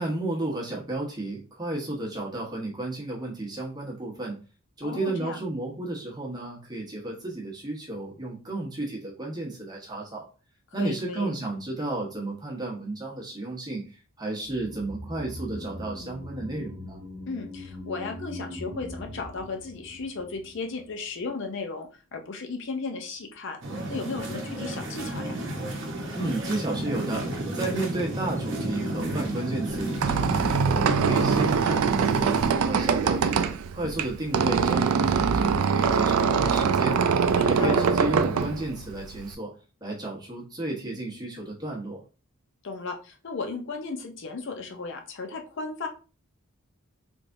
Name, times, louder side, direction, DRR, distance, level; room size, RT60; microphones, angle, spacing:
voice 1, 0.0-4.4 4.8-10.3 10.7-17.0 26.1-30.0 30.7-37.0 37.4-39.5 39.8-42.0, right 2 dB, 20° right, -2 dB, 1.0 m, -33 dB
voice 2, 4.8-5.4 10.8-11.3 17.3-25.4 37.4-37.9 42.6-45.9, left 4 dB, 55° left, 4 dB, 0.5 m, -35 dB
sound 1, 14.5-20.9 21.2-21.3, left 1 dB, 40° right, 1.1 m, -41 dB
sound 2, 23.6-32.5, right 1 dB, 55° right, 0.8 m, -32 dB
Squeak, 29.7-39.3, right 6 dB, 75° right, 0.3 m, -23 dB
3.4 x 3.2 x 2.5 m, 0.34 s
head